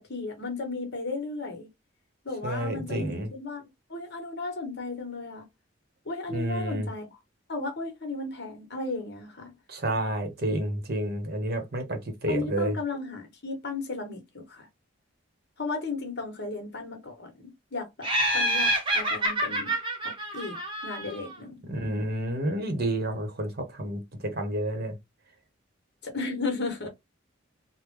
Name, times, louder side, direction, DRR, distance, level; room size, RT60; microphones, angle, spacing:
voice 1, 0.0-1.7 2.2-3.6 3.9-5.5 6.0-7.2 7.5-9.5 12.3-14.7 15.6-18.1 18.3-19.7 20.0-21.7 26.0-26.9, left 3 dB, 55° left, 1.2 m, -35 dB
voice 2, 2.4-3.3 6.3-6.9 9.7-12.7 21.7-24.9, right 1 dB, 50° right, 0.9 m, -30 dB
Laughter, 18.0-21.3, right 1 dB, 25° right, 0.8 m, -27 dB
3.6 x 2.1 x 3.0 m
head